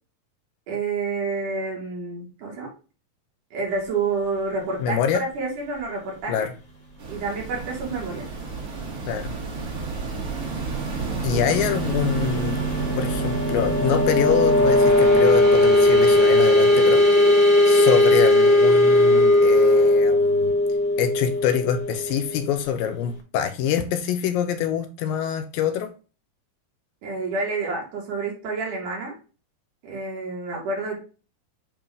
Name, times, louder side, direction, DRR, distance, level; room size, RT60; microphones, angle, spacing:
voice 1, 0.7-2.7 3.5-6.5 7.1-8.3 11.3-11.4 27.0-29.2 29.8-31.0, right 4 dB, 60° right, -2 dB, 3.4 m, -29 dB
voice 2, 4.8-5.2 6.3-6.5 9.1-9.3 11.2-12.6 13.0-20.6 21.0-25.9, left 9 dB, 80° left, 8 dB, 2.4 m, -25 dB
sound 1, 7.0-15.1, right 4 dB, 45° right, 2.1 m, -32 dB
sound 2, 10.2-22.8, left 1 dB, 20° left, 1.4 m, -19 dB
8.8 x 3.0 x 3.6 m, 0.34 s
omnidirectional pair, 4.2 m